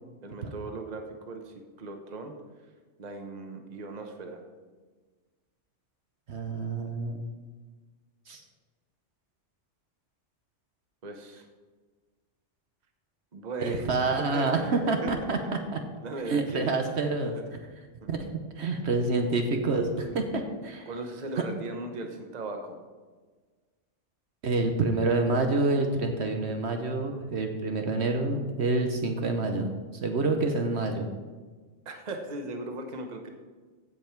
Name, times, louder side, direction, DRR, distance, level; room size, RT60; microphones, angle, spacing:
voice 1, 0.2-2.3 3.0-4.4 11.0-11.5 13.3-13.9 14.3-15.1 16.0-16.8 18.0-18.1 20.9-22.8 31.8-33.3, right 2 dB, 40° right, 4 dB, 1.0 m, -38 dB
voice 2, 6.3-7.2 8.3-8.4 13.6-15.4 15.7-15.8 16.2-17.6 18.1-18.3 18.6-20.9 24.4-29.7 30.0-31.1, right 3 dB, 65° right, 4 dB, 1.1 m, -27 dB
15.0 x 5.4 x 4.5 m, 1.4 s
omnidirectional pair, 1.2 m